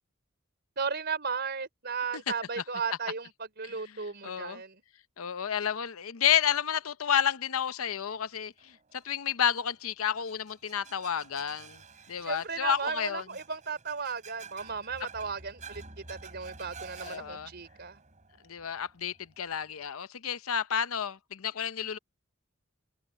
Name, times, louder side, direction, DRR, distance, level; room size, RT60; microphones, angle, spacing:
voice 1, 0.8-4.8 12.2-18.0, right 5 dB, 50° right, 4.2 m, -35 dB
voice 2, 4.2-4.6 5.2-11.8 12.1-13.2 17.0-17.5 18.4-22.0, left 8 dB, 85° left, 0.7 m, -30 dB
sound 1, 8.6-19.9, right 4 dB, 35° right, 5.2 m, -51 dB
head